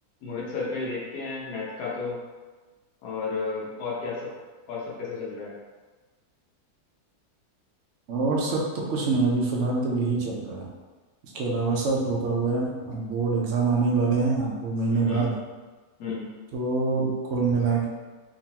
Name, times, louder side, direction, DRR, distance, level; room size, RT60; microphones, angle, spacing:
voice 1, 0.2-2.2 3.0-4.3 4.7-5.5 14.9-15.3 16.0-16.3, left 4 dB, 80° left, -5 dB, 1.4 m, -32 dB
voice 2, 8.1-8.6 8.9-10.7 11.3-15.3 16.5-17.9, right 4 dB, 60° right, -2 dB, 0.9 m, -25 dB
3.7 x 2.9 x 2.8 m, 1.3 s
omnidirectional pair, 1.7 m